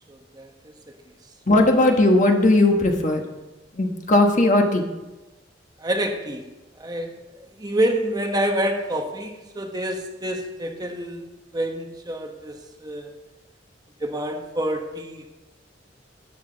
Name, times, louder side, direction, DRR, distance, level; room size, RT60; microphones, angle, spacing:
voice 1, 0.1-0.7 5.8-6.5 6.8-7.1 7.4-11.2 11.5-13.1 14.0-15.3, right 1 dB, 20° right, 3 dB, 1.0 m, -27 dB
voice 2, 1.5-3.2 3.8-4.8, left 2 dB, 40° left, 3 dB, 1.3 m, -17 dB
12.5 x 9.2 x 3.9 m, 1.1 s
head